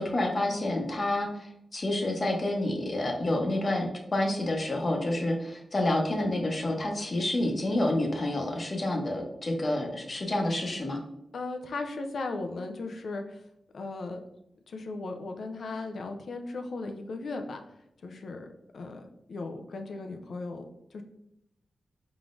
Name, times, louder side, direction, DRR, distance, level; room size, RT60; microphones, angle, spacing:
voice 1, 0.0-11.0, left 1 dB, 45° left, 2 dB, 0.9 m, -29 dB
voice 2, 11.3-13.4 13.7-14.2 14.7-17.6 18.0-18.5 18.7-20.6 20.9-21.0, left 3 dB, 75° left, 5 dB, 0.5 m, -37 dB
4.5 x 3.8 x 2.5 m, 0.83 s
cardioid pair, 80°, 0 cm